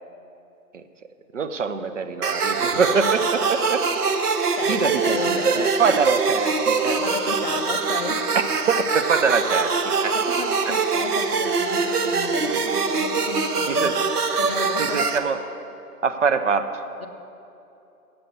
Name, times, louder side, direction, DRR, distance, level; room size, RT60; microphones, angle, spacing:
voice 1, 1.3-3.8 4.7-7.0 8.7-10.2 13.7-13.9 14.8-15.4 16.0-16.8, right 5 dB, 55° right, 9 dB, 0.6 m, -24 dB
sound 1, 2.2-15.2, right 4 dB, 75° right, 1.0 m, -23 dB
voice 2, 4.6-5.7 7.0-8.3 10.1-13.9 14.2-15.0 17.0-17.1, left 4 dB, 40° left, 6 dB, 0.6 m, -34 dB
8.0 x 7.8 x 7.9 m, 2.8 s
figure-of-eight pair, 140°, 46 cm